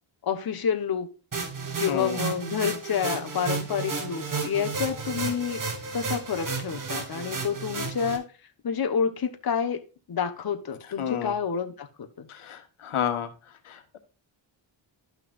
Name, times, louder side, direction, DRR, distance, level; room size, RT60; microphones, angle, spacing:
voice 1, 0.2-1.1 1.8-5.6 5.9-8.3 8.6-9.8 10.1-12.3, left 7 dB, 45° left, 6 dB, 1.2 m, -28 dB
sound 1, 1.3-8.2, right 4 dB, 40° right, 1.9 m, -32 dB
voice 2, 1.9-2.2 11.0-11.3 12.3-13.3 13.7-14.0, left 9 dB, 80° left, 7 dB, 1.5 m, -30 dB
12.5 x 5.8 x 2.5 m, 0.33 s
wide cardioid pair, 120°, 50 cm